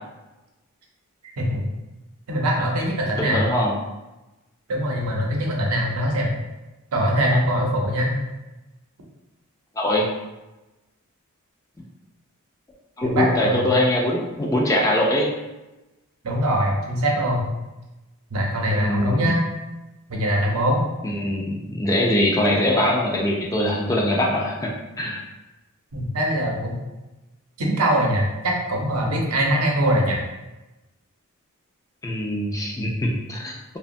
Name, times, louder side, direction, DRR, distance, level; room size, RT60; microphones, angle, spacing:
voice 1, 1.4-1.7 2.3-3.4 4.7-6.3 6.9-8.1 13.0-13.8 16.2-17.5 18.3-19.4 20.1-20.8 25.9-26.8 27.6-30.2, equal, 80° right, -1 dB, 0.6 m, -22 dB
voice 2, 3.2-3.7 9.8-10.1 13.0-15.3 18.7-19.3 21.0-24.7 25.0-25.2 32.0-33.8, left 1 dB, 15° left, -2 dB, 0.3 m, -22 dB
2.8 x 2.1 x 2.6 m, 1.0 s
head